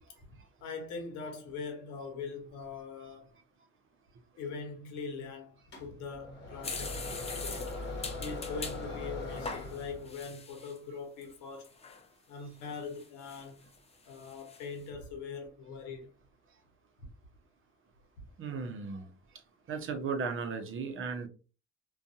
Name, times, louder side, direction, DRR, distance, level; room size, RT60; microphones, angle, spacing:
voice 1, 0.6-3.3 4.4-7.8 8.2-11.7 12.3-13.6 14.1-16.1, left 4 dB, 75° left, 0.8 m, -42 dB
sound 1, 5.7-10.2, left 2 dB, 40° left, 1.1 m, -40 dB
sound 2, 6.6-8.8 9.3-10.8 11.2-11.3 11.6-12.0 12.6-13.8 14.1-14.6, left 4 dB, 20° left, 0.6 m, -42 dB
voice 2, 18.4-19.1 19.7-21.3, right 5 dB, 45° right, 0.7 m, -35 dB
2.5 x 2.3 x 2.3 m
hypercardioid pair, 65°, 29 cm